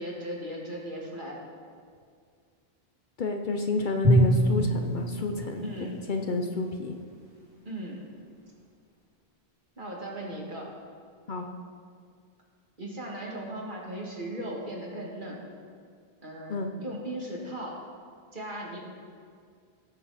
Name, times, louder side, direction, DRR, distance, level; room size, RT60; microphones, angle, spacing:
voice 1, 0.0-1.5 5.6-6.0 7.6-8.0 9.8-10.7 12.8-15.4 16.2-17.8 18.3-18.8, right 1 dB, 50° right, -3 dB, 2.3 m, -37 dB
voice 2, 3.2-7.0 10.3-10.4 11.3-11.5 16.5-16.7, left 3 dB, 55° left, 4 dB, 0.8 m, -30 dB
Drum, 4.0-7.0, right 1 dB, 25° right, 2.5 m, -26 dB
17.5 x 7.2 x 4.2 m, 2.1 s
omnidirectional pair, 1.0 m